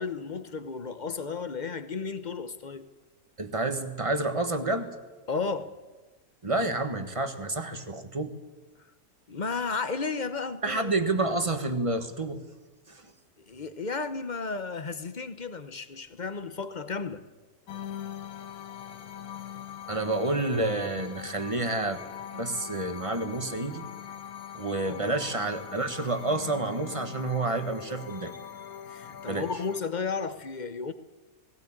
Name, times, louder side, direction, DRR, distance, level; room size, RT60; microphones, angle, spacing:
voice 1, 0.0-2.9 5.3-5.7 9.3-11.0 13.5-17.2 24.9-25.0 28.9-30.9, left 4 dB, 35° left, 1.0 m, -33 dB
voice 2, 3.4-4.9 6.4-8.3 10.6-12.4 12.9-13.1 19.9-22.0 22.3-23.8 24.5-28.4 29.3-29.5, right 2 dB, 25° right, 1.5 m, -29 dB
sound 1, 17.7-29.8, left 9 dB, 80° left, 1.4 m, -42 dB
19.0 x 17.0 x 8.8 m
omnidirectional pair, 1.5 m